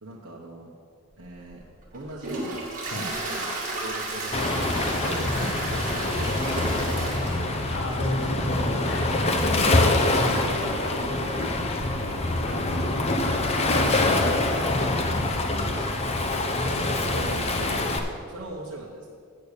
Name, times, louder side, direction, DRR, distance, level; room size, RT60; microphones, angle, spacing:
voice 1, 0.0-0.7 1.2-1.6 1.9-2.6 3.1-7.6 8.1-8.4 9.1-12.2 15.5-15.8 17.0-19.1, right 1 dB, 60° right, -4 dB, 1.0 m, -40 dB
Toilet flush, 1.2-15.9, right 2 dB, 40° right, 2.0 m, -37 dB
Waves surf, 4.3-18.0, left 2 dB, 30° left, 0.7 m, -25 dB
voice 2, 7.3-9.1 9.4-10.6 12.4-12.6 15.3-15.8, equal, 55° left, 1 dB, 1.2 m, -33 dB
8.6 x 6.8 x 6.7 m, 2.3 s
head